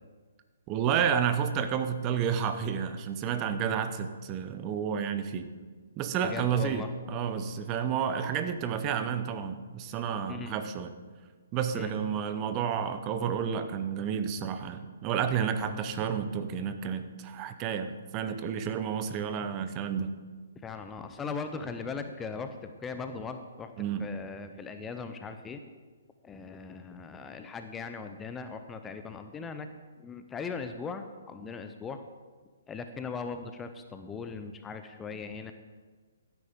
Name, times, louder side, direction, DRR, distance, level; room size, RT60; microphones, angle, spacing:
voice 1, 0.7-5.5 6.0-10.9 11.5-20.1 23.8-24.1, right 7 dB, 30° right, 9 dB, 0.8 m, -30 dB
voice 2, 6.2-6.9 10.3-10.5 11.7-11.9 15.6-15.8 20.6-23.7 24.0-25.6 26.2-29.7 30.0-32.0 32.7-35.5, left 5 dB, 15° left, 8 dB, 0.6 m, -39 dB
15.5 x 9.3 x 3.7 m, 1.4 s
figure-of-eight pair, 135°, 0 cm